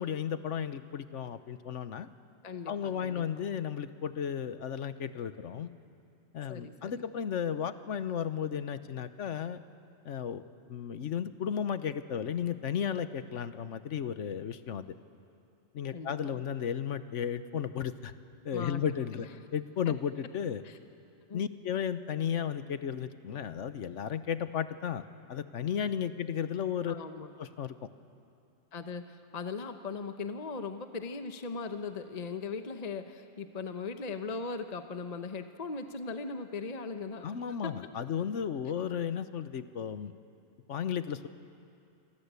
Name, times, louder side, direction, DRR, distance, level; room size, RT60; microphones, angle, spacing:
voice 1, 0.0-2.1 2.7-5.7 6.3-9.6 10.0-15.0 15.7-18.1 18.4-20.6 21.3-25.0 25.3-27.0 27.4-27.9 37.2-40.1 40.7-41.3, left 8 dB, 70° left, 12 dB, 1.2 m, -34 dB
voice 2, 2.4-3.2 6.5-7.0 15.9-16.4 18.5-18.8 20.6-20.8 21.3-21.4 26.9-27.3 28.7-37.9, left 4 dB, 35° left, 7 dB, 1.0 m, -39 dB
28.5 x 22.0 x 8.3 m, 2.7 s
omnidirectional pair, 1.3 m